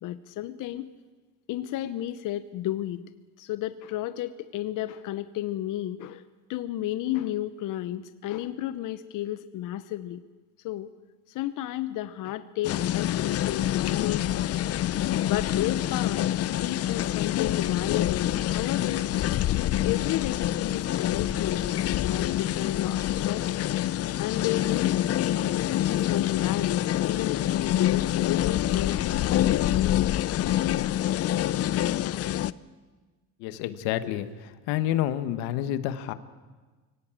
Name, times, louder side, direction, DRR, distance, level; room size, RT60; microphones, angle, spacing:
voice 1, 0.0-0.9 1.5-3.0 3.4-6.2 6.5-10.2 10.6-10.9 11.3-14.8 15.2-16.2 16.6-19.1 19.6-21.6 22.0-23.7 24.2-25.5 26.1-29.0 29.3-30.1, left 13 dB, 60° left, 11 dB, 0.9 m, -32 dB
sound 1, 12.6-32.5, left 13 dB, 40° left, 0.6 m, -26 dB
voice 2, 33.4-36.1, left 12 dB, 90° left, 11 dB, 1.5 m, -29 dB
24.5 x 17.5 x 8.9 m, 1.3 s
cardioid pair, 125°, 36 cm